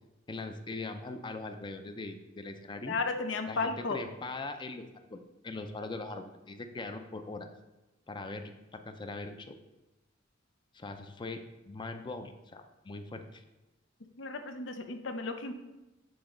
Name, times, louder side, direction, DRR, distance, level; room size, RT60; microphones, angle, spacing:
voice 1, 0.3-3.0 3.5-4.8 5.1-7.5 8.1-9.6 10.7-13.4, left 3 dB, 25° left, 7 dB, 0.5 m, -41 dB
voice 2, 2.9-4.0 14.2-15.5, left 3 dB, 75° left, 6 dB, 0.6 m, -34 dB
7.9 x 4.0 x 3.8 m, 1.0 s
head